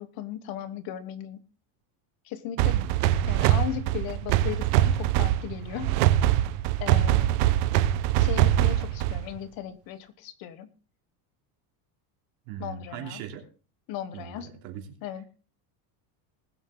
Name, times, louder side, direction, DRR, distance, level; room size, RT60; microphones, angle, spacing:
voice 1, 0.0-1.4 2.2-2.7 3.3-6.0 6.8-7.4 8.2-10.7 12.6-13.2 13.9-14.5 15.0-15.2, left 11 dB, 45° left, 13 dB, 1.3 m, -37 dB
sound 1, 2.6-9.4, right 13 dB, 60° right, 0.9 m, -23 dB
voice 2, 2.6-2.9 12.4-13.5 14.1-15.0, right 9 dB, 80° right, 3 dB, 3.2 m, -40 dB
20.0 x 8.2 x 3.8 m, 0.35 s
cardioid pair, 180°, 47 cm